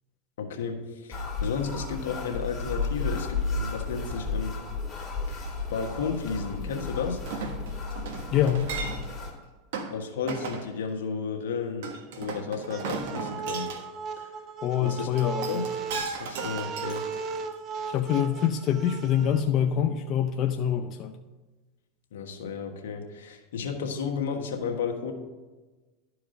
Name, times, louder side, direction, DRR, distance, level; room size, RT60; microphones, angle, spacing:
voice 1, 0.4-4.5 5.3-7.2 9.8-11.9 12.2-13.7 14.2-14.3 14.8-15.1 15.5-15.6 16.2-17.0 22.1-25.1, left 6 dB, 85° left, 3 dB, 1.4 m, -33 dB
sound 1, 1.1-9.3, left 4 dB, 20° left, 2.6 m, -33 dB
Chink clink, 7.3-9.2 9.7-9.9 10.3-10.7 11.8-13.8 15.2-17.5 18.0-18.1, right 4 dB, 75° right, 1.3 m, -36 dB
voice 2, 8.3-8.7 14.6-15.6 17.9-21.2, left 9 dB, 45° left, 6 dB, 0.5 m, -25 dB
sound 2, 12.7-19.4, right 5 dB, 40° right, 0.7 m, -36 dB
12.0 x 4.8 x 5.2 m, 1.2 s
supercardioid pair, 115°, 0 cm